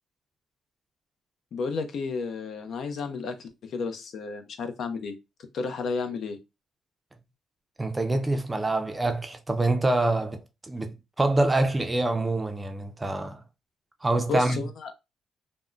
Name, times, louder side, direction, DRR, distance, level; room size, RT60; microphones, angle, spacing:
voice 1, 1.5-5.2 5.5-6.4 14.3-14.9, left 4 dB, 65° left, 0.5 m, -32 dB
voice 2, 7.8-13.4 14.0-14.6, right 2 dB, 20° right, 0.4 m, -26 dB
3.5 x 2.1 x 2.4 m
cardioid pair, 90°, 0 cm